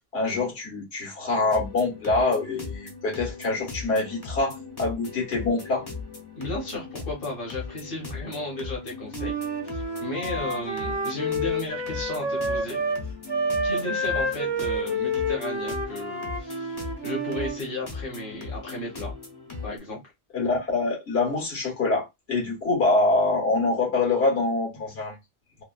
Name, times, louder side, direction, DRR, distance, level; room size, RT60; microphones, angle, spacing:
voice 1, 0.1-5.9 20.3-25.2, left 3 dB, 85° left, 1.6 m, -25 dB
sound 1, 1.5-19.8, left 4 dB, 25° left, 0.7 m, -38 dB
voice 2, 6.3-9.3 9.7-12.8 13.6-19.1 19.6-20.0, left 1 dB, 60° left, 1.2 m, -34 dB
Wind instrument woodwind instrument, 9.1-13.0 13.3-17.6, equal, 30° right, 0.6 m, -29 dB
3.1 x 2.3 x 2.3 m
omnidirectional pair, 1.0 m